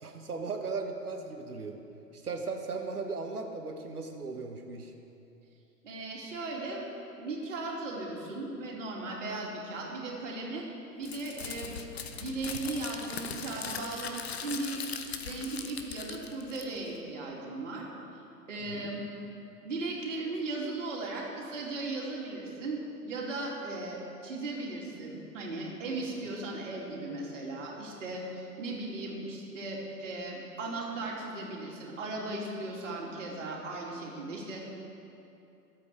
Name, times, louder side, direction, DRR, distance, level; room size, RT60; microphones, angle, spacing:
voice 1, 0.0-1.8 2.1-4.9 18.6-18.9, right 4 dB, 65° right, 4 dB, 1.6 m, -37 dB
voice 2, 5.8-6.9 7.2-10.7 11.0-11.8 12.1-14.8 15.2-17.8 18.5-19.0 19.6-34.7, right 2 dB, 50° right, -3 dB, 3.3 m, -37 dB
Crumpling crinkling, 11.0-17.0, left 6 dB, 40° left, 1.0 m, -40 dB
25.0 x 8.5 x 5.0 m, 2.8 s
figure-of-eight pair, 125°, 49 cm